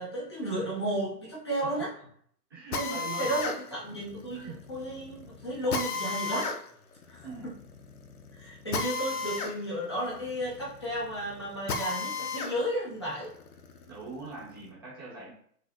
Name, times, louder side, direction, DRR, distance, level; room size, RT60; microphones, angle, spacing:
voice 1, 0.0-1.9 2.7-6.5 7.1-7.5 8.3-13.3, right 1 dB, 15° left, -7 dB, 0.6 m, -33 dB
voice 2, 2.5-3.4 4.3-4.6 7.2-7.5 13.9-15.3, right 3 dB, 15° right, -7 dB, 0.8 m, -42 dB
Drill, 2.7-12.6 13.0-14.6, left 4 dB, 60° left, 0.7 m, -35 dB
4.7 x 2.0 x 2.8 m, 0.63 s
hypercardioid pair, 165°, 50 cm